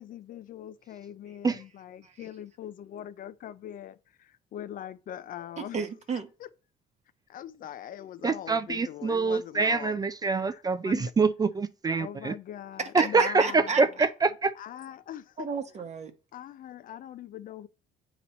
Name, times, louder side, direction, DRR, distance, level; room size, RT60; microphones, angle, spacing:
voice 1, 0.0-5.8 6.4-6.5 7.3-10.0 10.4-11.1 11.9-13.8 14.6-15.5 16.3-17.7, left 11 dB, 55° left, 0.5 m, -42 dB
voice 2, 5.7-6.3 12.8-13.8 15.4-16.1, right 5 dB, 40° right, 0.9 m, -32 dB
voice 3, 8.2-12.4 12.9-14.5, right 4 dB, 25° right, 0.4 m, -25 dB
8.4 x 3.0 x 4.1 m
cardioid pair, 110°, 17 cm